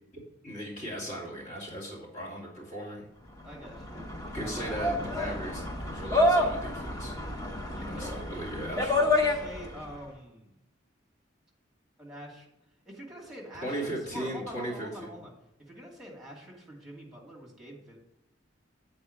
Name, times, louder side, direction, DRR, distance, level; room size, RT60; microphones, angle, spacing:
voice 1, 0.1-3.1 4.3-7.1 7.8-9.1 13.6-15.2, right 1 dB, 35° left, -5 dB, 2.7 m, -37 dB
voice 2, 3.4-4.9 5.2-5.5 7.7-10.5 12.0-12.5 12.9-15.3 15.6-18.0, equal, 5° right, -2 dB, 2.2 m, -45 dB
sound 1, 3.5-9.9, left 1 dB, 15° left, 0.9 m, -29 dB
8.3 x 4.4 x 6.5 m, 0.86 s
head